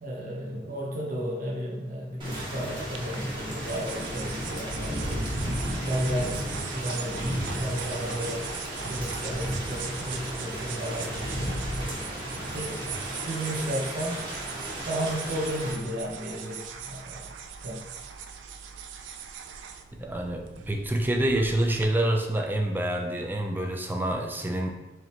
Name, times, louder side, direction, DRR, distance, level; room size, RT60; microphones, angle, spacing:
voice 1, 0.0-5.3 5.8-8.5 8.8-11.9 12.5-12.8 13.2-14.2 14.8-17.3 17.6-17.8, equal, 50° right, -3 dB, 0.8 m, -34 dB
Thunder / Rain, 2.2-15.7, equal, 25° right, 1.1 m, -33 dB
sound 1, 2.9-21.8, right 7 dB, 90° right, 0.4 m, -40 dB
voice 2, 20.0-24.7, right 1 dB, 10° right, 2 dB, 0.4 m, -27 dB
4.9 x 3.0 x 2.9 m, 1.0 s
head